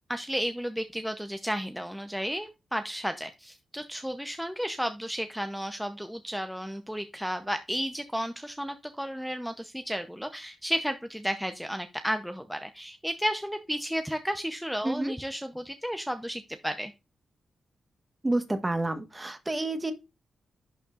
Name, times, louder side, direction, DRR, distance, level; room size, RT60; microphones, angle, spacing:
voice 1, 0.1-16.9, equal, ahead, 0.7 m, -33 dB
voice 2, 14.8-15.1 18.2-19.9, right 2 dB, 20° right, 1.2 m, -29 dB
11.0 x 4.3 x 2.4 m
cardioid pair, 75°, 0 cm